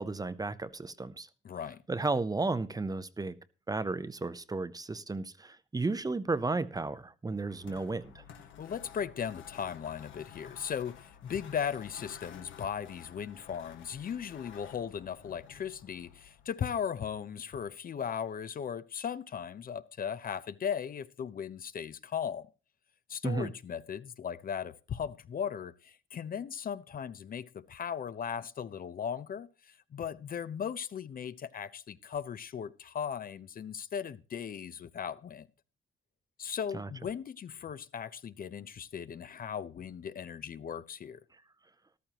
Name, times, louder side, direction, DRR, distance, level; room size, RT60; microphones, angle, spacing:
voice 1, 0.0-1.3 1.9-3.4 3.7-8.2 23.2-23.5 36.7-36.9, right 3 dB, 20° right, 0.7 m, -33 dB
voice 2, 1.4-1.8 8.6-22.5 23.1-35.5 36.4-41.2, left 8 dB, 45° left, 0.7 m, -37 dB
sound 1, 7.3-16.7, left 8 dB, 80° left, 1.6 m, -52 dB
13.5 x 12.5 x 2.9 m
cardioid pair, 90°, 20 cm